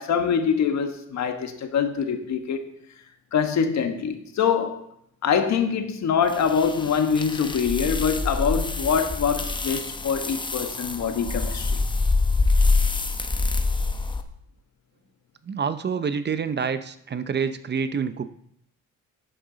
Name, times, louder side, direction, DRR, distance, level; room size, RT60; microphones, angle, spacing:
voice 1, 0.0-2.6 3.3-4.8 5.2-11.8, left 7 dB, 65° left, 6 dB, 1.5 m, -24 dB
sound 1, 6.3-14.2, left 3 dB, 15° left, 0.9 m, -25 dB
voice 2, 15.4-18.3, right 6 dB, 35° right, 12 dB, 0.7 m, -27 dB
11.0 x 8.9 x 4.0 m, 0.73 s
cardioid pair, 90°, 30 cm